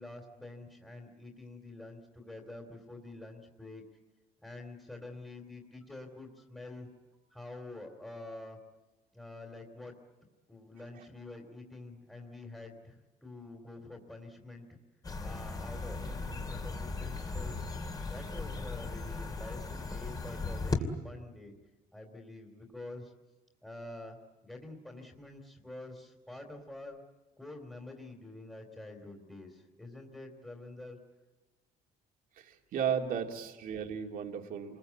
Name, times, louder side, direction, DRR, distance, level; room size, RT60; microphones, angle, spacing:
voice 1, 0.0-3.8 4.4-8.6 9.1-10.0 10.5-14.8 15.2-17.6 18.1-21.5 21.9-23.1 23.6-24.2 24.4-27.0 27.4-31.0, left 2 dB, 5° left, 1 dB, 3.0 m, -47 dB
sound 1, 15.0-20.8, left 3 dB, 25° left, 2.7 m, -37 dB
voice 2, 32.4-34.8, right 8 dB, 60° right, 3 dB, 2.4 m, -35 dB
28.0 x 21.5 x 8.4 m, 1.2 s
cardioid pair, 135°, 16 cm